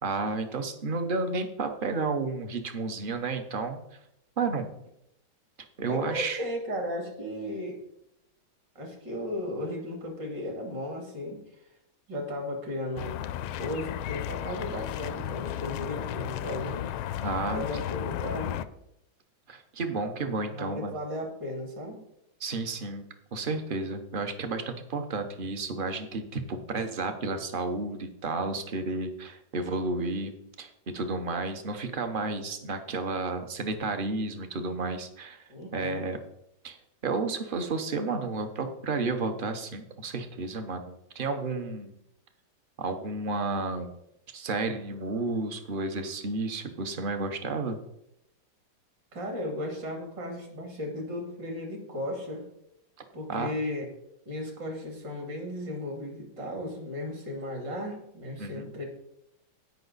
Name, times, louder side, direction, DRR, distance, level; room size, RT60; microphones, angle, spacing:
voice 1, 0.0-3.8 4.4-4.7 5.8-6.4 17.2-17.6 19.5-21.0 22.4-23.0 23.3-36.2 36.6-36.8 37.0-42.0 42.8-43.9 44.3-47.8 53.3-53.5 58.4-58.7, right 3 dB, 40° right, 7 dB, 0.7 m, -32 dB
voice 2, 5.9-7.8 8.7-11.6 12.1-13.2 13.6-16.8 17.5-18.6 20.4-22.0 35.5-36.1 49.1-52.4 53.1-53.9 54.2-58.8, left 1 dB, 60° right, 2 dB, 3.3 m, -35 dB
sound 1, 13.0-18.7, left 12 dB, 90° left, 1.4 m, -34 dB
16.5 x 5.7 x 4.0 m, 0.78 s
omnidirectional pair, 2.2 m